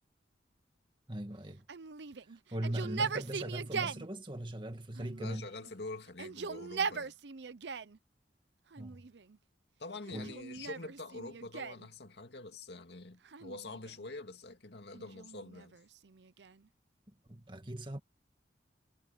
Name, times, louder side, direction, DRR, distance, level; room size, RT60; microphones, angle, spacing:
voice 1, 1.1-1.6 2.5-5.5 8.8-9.0 10.1-10.3 17.3-18.0, right 1 dB, 25° right, 2.2 m, -39 dB
Yell, 1.7-4.1 5.0-5.7 6.1-8.0 8.7-9.4 10.1-11.9 13.2-14.1 14.9-16.7, right 5 dB, 75° right, 0.7 m, -40 dB
voice 2, 5.2-7.2 9.8-15.8, left 2 dB, 70° left, 2.3 m, -45 dB
head